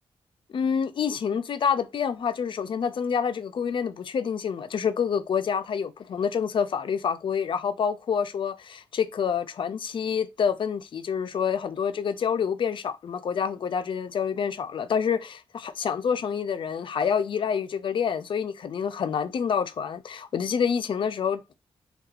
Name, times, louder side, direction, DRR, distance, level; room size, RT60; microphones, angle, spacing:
voice 1, 0.5-21.5, left 7 dB, 55° left, 0.4 m, -27 dB
2.8 x 2.2 x 2.3 m
cardioid pair, 75°, 10 cm